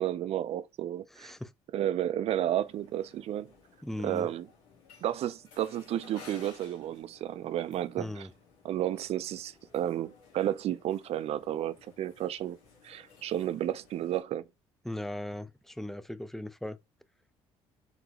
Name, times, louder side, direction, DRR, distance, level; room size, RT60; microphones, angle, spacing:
voice 1, 0.0-1.3 1.7-3.5 4.0-4.5 5.0-8.3 8.6-12.6 12.8-14.4, right 12 dB, 60° right, 0.4 m, -32 dB
voice 2, 1.1-1.5 3.8-4.3 8.0-8.3 14.8-16.8, left 1 dB, ahead, 0.4 m, -38 dB
sound 1, 2.6-14.2, left 5 dB, 85° left, 1.4 m, -57 dB
3.9 x 2.9 x 2.9 m
supercardioid pair, 75°, 12 cm